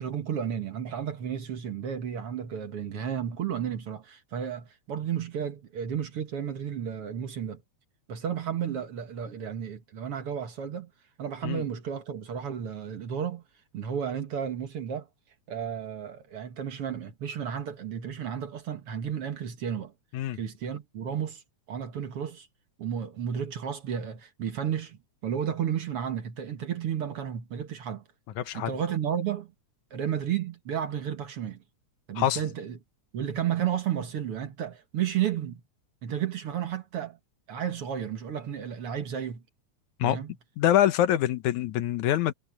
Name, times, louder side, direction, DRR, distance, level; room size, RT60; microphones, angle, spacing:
voice 1, 0.0-7.6 8.1-10.9 11.2-13.4 13.7-15.1 15.5-19.9 20.3-21.4 21.7-22.5 22.8-28.0 28.5-29.5 29.9-31.6 32.1-32.8 33.1-35.6 36.0-37.2 37.5-39.4 40.0-40.3, right 9 dB, 55° right, 2.2 m, -32 dB
voice 2, 28.4-28.7 32.2-32.4 40.0-40.2 40.6-42.3, left 12 dB, 75° left, 2.4 m, -25 dB
omnidirectional pair, 3.4 m